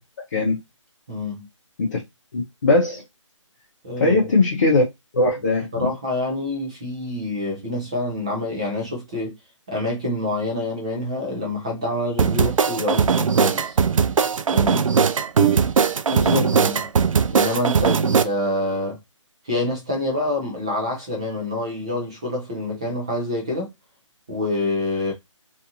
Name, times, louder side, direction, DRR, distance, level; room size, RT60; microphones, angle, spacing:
voice 1, 1.1-1.5 3.8-4.2 5.7-9.3 9.7-13.8 14.5-14.9 16.2-16.9 17.3-19.0 19.4-23.7 24.3-25.1, left 1 dB, 10° right, 0.4 m, -27 dB
voice 2, 2.3-3.0 4.0-4.8 5.1-5.9 16.1-16.6, left 2 dB, 35° left, 0.7 m, -20 dB
sound 1, 12.2-18.2, right 6 dB, 90° right, 0.4 m, -19 dB
2.6 x 2.5 x 2.7 m
hypercardioid pair, 165°, 17 cm